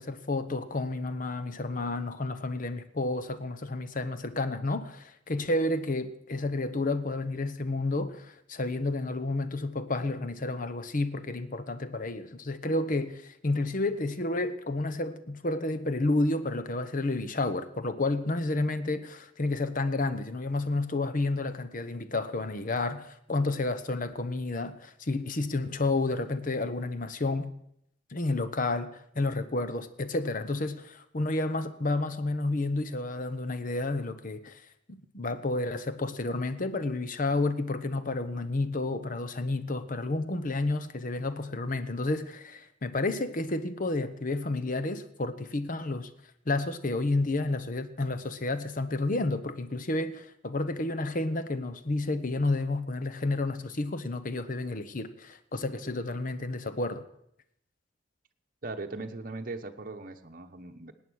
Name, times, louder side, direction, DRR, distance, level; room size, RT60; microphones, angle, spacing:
voice 1, 0.0-27.5 28.1-34.6 34.9-46.1 46.5-57.0, left 2 dB, 45° left, 0.9 m, -30 dB
voice 2, 58.6-60.9, right 3 dB, 45° right, 1.0 m, -39 dB
18.5 x 9.1 x 6.3 m
head